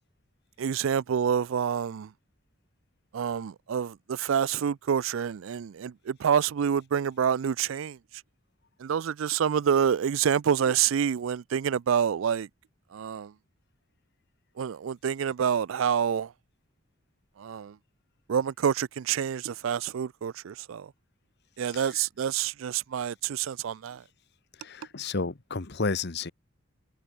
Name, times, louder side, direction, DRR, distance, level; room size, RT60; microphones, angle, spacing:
voice 1, 0.6-2.1 3.1-8.0 8.8-12.5 12.9-13.3 14.6-16.3 17.4-17.7 18.3-20.9 21.6-24.0, right 8 dB, 75° right, 0.4 m, -27 dB
voice 2, 21.7-22.0 24.6-26.3, left 4 dB, 55° left, 1.1 m, -32 dB
head